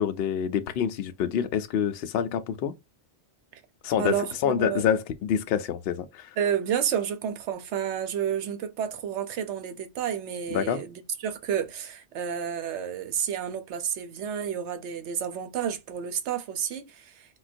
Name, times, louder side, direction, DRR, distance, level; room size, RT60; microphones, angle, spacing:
voice 1, 0.0-2.7 3.8-6.3 10.5-10.8, left 8 dB, 65° left, 0.7 m, -27 dB
voice 2, 4.0-4.8 6.4-17.1, right 8 dB, 80° right, 0.9 m, -30 dB
3.8 x 2.2 x 2.5 m
omnidirectional pair, 1.2 m